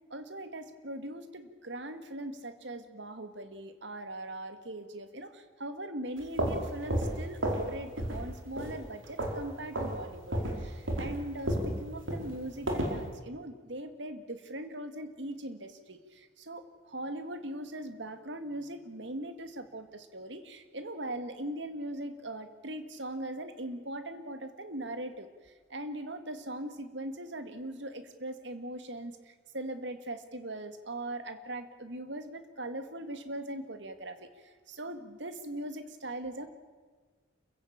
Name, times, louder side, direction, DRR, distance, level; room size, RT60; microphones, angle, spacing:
voice 1, 0.1-10.3 10.6-25.3 25.7-34.3 34.7-36.5, right 1 dB, 65° right, 9 dB, 2.1 m, -40 dB
sound 1, 6.2-7.7 8.0-8.3 8.6-9.4 9.7-10.0 10.3-13.0, right 1 dB, 90° right, 4.8 m, -32 dB
28.0 x 15.5 x 8.8 m, 1.5 s
head